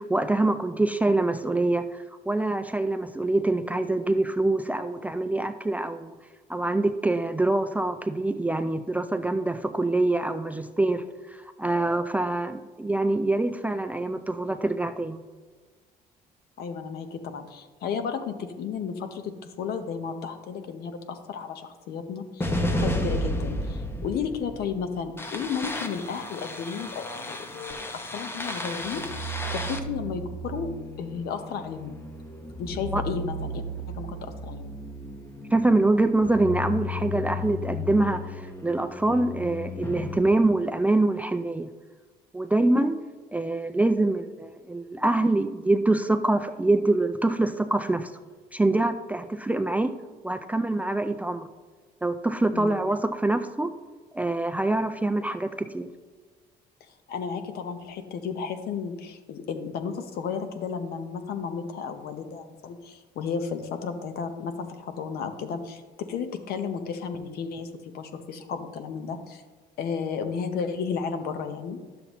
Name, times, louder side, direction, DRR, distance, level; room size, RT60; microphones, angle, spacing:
voice 1, 0.0-6.1 6.5-15.2 32.9-33.0 35.5-41.7 42.3-43.0 43.3-48.1 48.5-49.9 50.2-51.5 52.0-53.7 54.1-55.9, right 2 dB, 10° right, 8 dB, 0.3 m, -25 dB
voice 2, 16.6-30.7 31.0-32.0 32.6-33.6 34.0-34.8 52.5-52.9 57.1-69.4 69.8-71.8, left 6 dB, 65° left, 8 dB, 0.8 m, -33 dB
sound 1, 22.4-40.2, left 1 dB, 15° left, 0.7 m, -33 dB
10.5 x 6.9 x 3.0 m, 1.4 s
cardioid pair, 110°, 17 cm